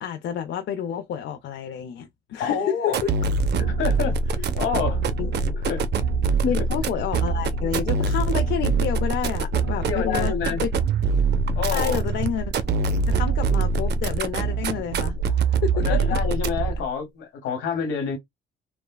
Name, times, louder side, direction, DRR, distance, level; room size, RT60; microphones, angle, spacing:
voice 1, 0.0-3.1 5.2-5.3 6.5-10.3 10.6-10.7 11.7-15.1 15.6-16.0, left 8 dB, 65° left, 0.4 m, -29 dB
voice 2, 2.4-3.0 3.6-5.0 5.4-5.9 6.4-6.7 9.8-10.6 11.6-12.0 15.7-18.2, left 6 dB, 85° left, 1.0 m, -28 dB
sound 1, 2.9-16.8, right 4 dB, 60° right, 0.5 m, -24 dB
3.2 x 2.1 x 2.2 m
cardioid pair, 90°, 20 cm